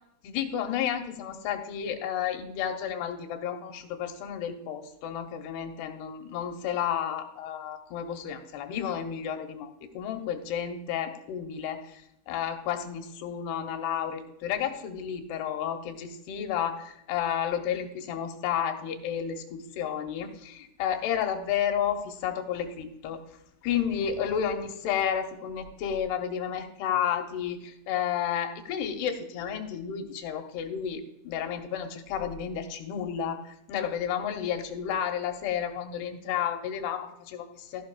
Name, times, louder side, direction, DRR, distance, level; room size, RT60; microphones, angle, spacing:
voice 1, 0.2-23.2 23.6-37.8, left 9 dB, 80° left, 5 dB, 3.0 m, -31 dB
14.0 x 11.5 x 2.4 m, 0.82 s
omnidirectional pair, 4.8 m